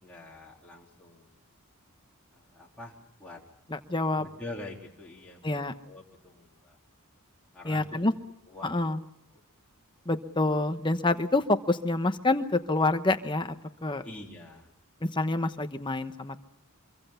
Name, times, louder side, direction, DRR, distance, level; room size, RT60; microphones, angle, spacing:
voice 1, 0.0-1.3 2.3-3.4 4.2-6.8 7.5-8.1 8.5-8.7 14.0-14.7, left 2 dB, 5° left, -4 dB, 3.7 m, -45 dB
voice 2, 3.7-4.3 5.4-5.7 7.6-8.1 8.6-9.0 10.1-13.5 13.8-14.0 15.0-16.4, left 2 dB, 20° left, 8 dB, 1.1 m, -27 dB
25.5 x 24.0 x 5.7 m, 0.72 s
head